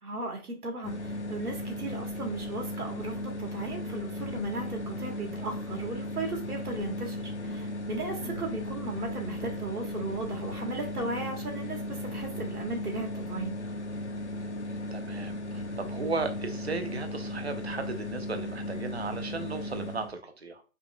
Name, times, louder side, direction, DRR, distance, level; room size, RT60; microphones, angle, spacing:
voice 1, 0.0-13.6, right 2 dB, 85° right, 2 dB, 1.7 m, -36 dB
sound 1, 0.8-20.1, left 1 dB, 50° left, 0.6 m, -36 dB
voice 2, 8.2-8.5 14.9-20.6, right 4 dB, 45° right, 8 dB, 0.5 m, -36 dB
5.1 x 2.8 x 2.4 m, 0.36 s
hypercardioid pair, 175°, 44 cm